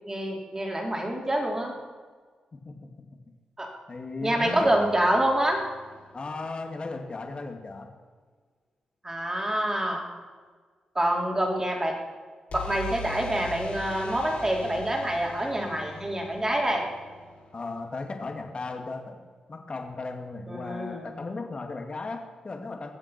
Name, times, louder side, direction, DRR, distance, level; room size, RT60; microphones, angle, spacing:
voice 1, 0.1-1.7 3.6-3.7 4.2-5.6 9.0-10.0 10.9-11.9 12.5-16.8 20.5-21.2, right 1 dB, 20° right, 0 dB, 4.3 m, -26 dB
voice 2, 3.9-4.7 6.1-7.9 17.5-19.2 19.5-22.9, left 3 dB, 45° left, 3 dB, 2.4 m, -36 dB
sound 1, 4.4-6.4 12.5-18.3, left 2 dB, 70° left, 4.7 m, -42 dB
21.5 x 7.7 x 6.0 m, 1.5 s
supercardioid pair, 45°, 2 cm